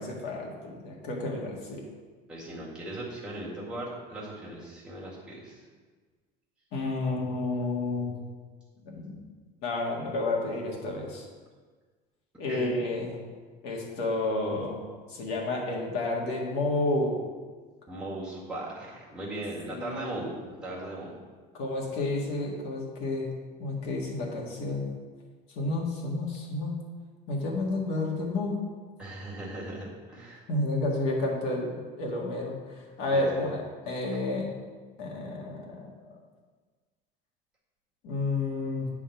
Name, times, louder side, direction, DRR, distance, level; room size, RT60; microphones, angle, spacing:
voice 1, 0.0-1.8 6.7-8.2 8.8-9.2 9.6-11.2 12.4-13.1 13.6-14.8 15.1-17.2 19.7-20.3 21.5-23.3 23.6-24.9 25.5-26.8 27.3-28.6 30.5-34.5 35.0-35.9 38.0-38.9, left 2 dB, 70° left, -1 dB, 1.8 m, -30 dB
voice 2, 2.3-5.6 12.5-12.8 17.9-20.4 20.6-21.1 29.0-30.4 33.1-33.4, right 1 dB, 5° right, -7 dB, 1.7 m, -38 dB
8.5 x 3.7 x 5.8 m, 1.4 s
cardioid pair, 175°, 18 cm